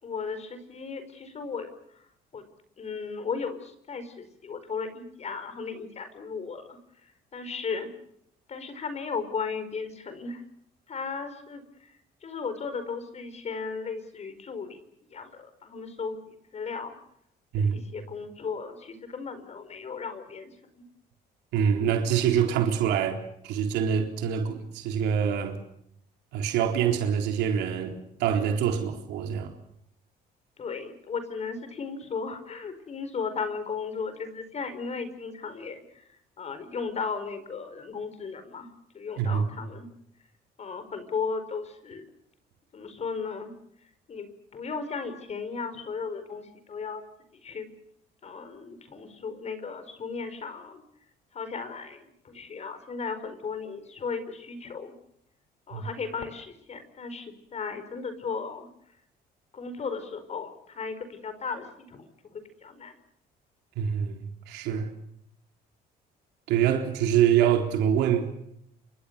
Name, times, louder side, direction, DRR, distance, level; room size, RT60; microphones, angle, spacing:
voice 1, 0.0-2.5 2.8-7.9 8.5-10.4 10.9-14.8 15.1-17.0 17.5-20.8 30.6-39.9 40.6-42.1 42.7-43.5 44.1-47.0 47.3-47.7 48.2-50.8 51.3-54.9 55.7-58.7 59.5-62.9, left 5 dB, 40° left, 4.8 m, -36 dB
voice 2, 21.5-25.6 26.3-29.5 39.2-39.4 55.7-55.9 63.8-64.9 66.5-68.3, right 8 dB, 90° right, 3.9 m, -25 dB
28.0 x 24.0 x 6.8 m
cardioid pair, 110°, 17 cm